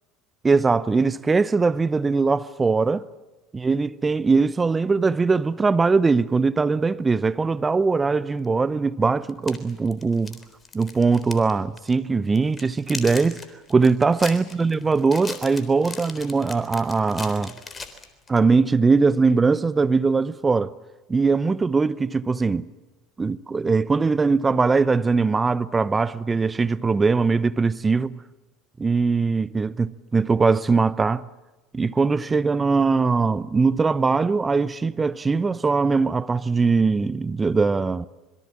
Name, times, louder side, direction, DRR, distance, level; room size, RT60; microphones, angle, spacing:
voice 1, 0.4-3.1 3.5-10.4 10.7-13.4 13.7-17.5 18.3-20.7 21.1-22.7 23.2-28.2 28.8-31.2 31.7-38.0, right 4 dB, 20° right, 0.8 m, -21 dB
sound 1, 8.4-8.5 9.3-11.5 11.8-11.9 12.3-18.4, left 4 dB, 25° left, 3.8 m, -38 dB
26.5 x 23.0 x 7.5 m
figure-of-eight pair, 70°, 0 cm